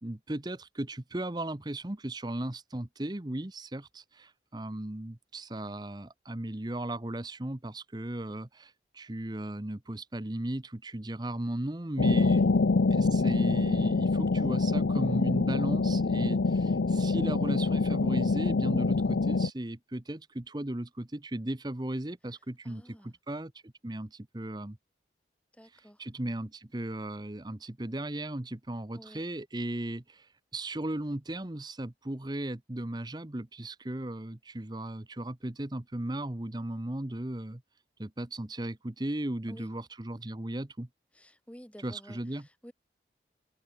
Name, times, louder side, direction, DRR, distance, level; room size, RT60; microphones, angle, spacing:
voice 1, 0.0-12.4 12.9-24.8 25.7-37.6 38.0-40.9 41.8-42.5, right 1 dB, 25° right, 0.9 m, -36 dB
sound 1, 12.0-19.5, left 3 dB, 90° left, 0.6 m, -25 dB
voice 2, 22.6-23.2 25.5-26.0 28.9-29.2 39.5-39.7 41.1-42.7, equal, 5° left, 7.2 m, -52 dB
head